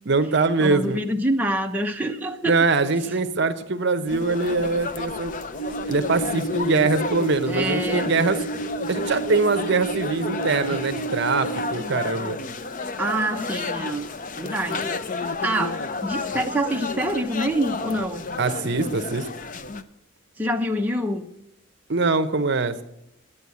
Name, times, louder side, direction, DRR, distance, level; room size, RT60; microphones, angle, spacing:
voice 1, 0.1-1.0 2.4-5.3 5.9-8.4 8.9-12.4 18.4-19.3 21.9-22.8, right 3 dB, 55° right, 10 dB, 0.8 m, -23 dB
voice 2, 0.6-2.6 7.5-8.1 13.0-14.1 14.4-18.2 20.4-21.3, right 1 dB, 10° right, 2 dB, 0.7 m, -26 dB
sound 1, 4.1-19.8, left 3 dB, 40° left, 0.6 m, -31 dB
sound 2, 5.6-11.7, right 4 dB, 55° left, 1.4 m, -32 dB
11.0 x 8.7 x 8.4 m, 0.83 s
head